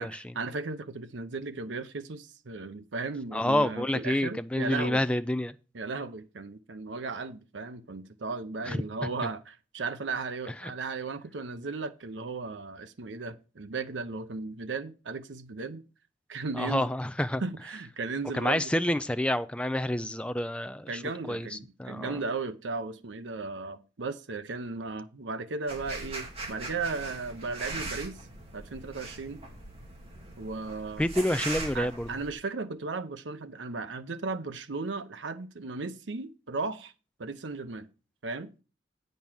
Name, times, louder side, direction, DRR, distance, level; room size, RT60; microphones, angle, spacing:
voice 1, 0.0-5.0 5.7-15.8 16.3-16.9 17.4-18.7 20.9-28.2 28.5-29.4 30.4-31.1 31.7-36.9 37.2-37.9 38.2-38.5, right 4 dB, 80° right, 0.8 m, -36 dB
voice 2, 3.3-5.5 8.7-9.1 10.6-10.7 16.6-17.4 18.3-21.0 21.3-22.2 31.0-32.1, left 1 dB, 5° left, 0.4 m, -28 dB
sound 1, 25.7-32.3, right 2 dB, 30° right, 2.0 m, -40 dB
8.7 x 5.4 x 6.1 m
head